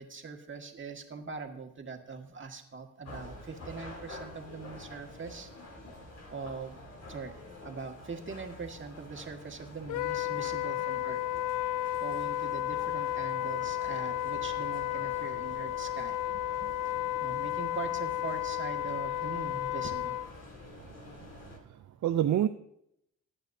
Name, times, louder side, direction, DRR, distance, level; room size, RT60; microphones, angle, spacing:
voice 1, 0.0-5.5 6.3-6.8 7.1-7.4 7.6-11.2 12.0-16.2 17.2-20.1, right 4 dB, 35° right, 4 dB, 1.9 m, -42 dB
sound 1, 3.0-21.6, left 1 dB, 50° left, 3.1 m, -48 dB
Wind instrument woodwind instrument, 9.9-20.3, left 14 dB, 65° left, 0.5 m, -33 dB
voice 2, 20.8-22.5, right 11 dB, 60° right, 9 dB, 0.6 m, -31 dB
19.0 x 8.8 x 2.7 m, 0.76 s
cardioid pair, 75°, 33 cm